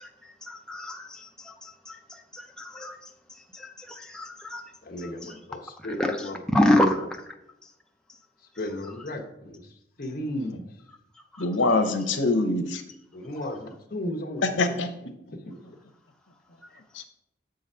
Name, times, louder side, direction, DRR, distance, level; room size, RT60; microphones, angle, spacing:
voice 1, 0.0-4.6 5.2-5.3 6.0-7.1 11.3-11.4, left 1 dB, 5° left, 2 dB, 0.4 m, -28 dB
voice 2, 4.8-6.7 8.4-10.6 13.1-14.8 15.4-15.8, left 1 dB, 50° left, 2 dB, 0.9 m, -35 dB
voice 3, 11.4-12.8 14.6-15.1 16.9-17.0, left 2 dB, 85° left, 6 dB, 0.8 m, -24 dB
7.3 x 3.9 x 5.5 m, 0.85 s
head